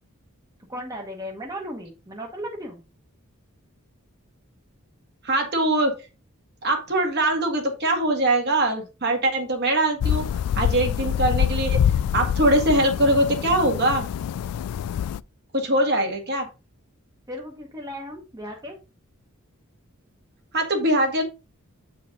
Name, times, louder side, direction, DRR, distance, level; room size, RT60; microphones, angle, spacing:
voice 1, 0.7-2.8 17.3-18.8, equal, 15° right, 1 dB, 1.2 m, -36 dB
voice 2, 5.2-5.9 6.6-10.3 10.6-11.8 12.1-14.1 15.5-16.5 20.5-21.2, right 1 dB, 50° right, 3 dB, 1.9 m, -22 dB
sound 1, 10.0-15.2, left 9 dB, 90° left, 0.3 m, -25 dB
8.0 x 4.7 x 3.8 m, 0.28 s
head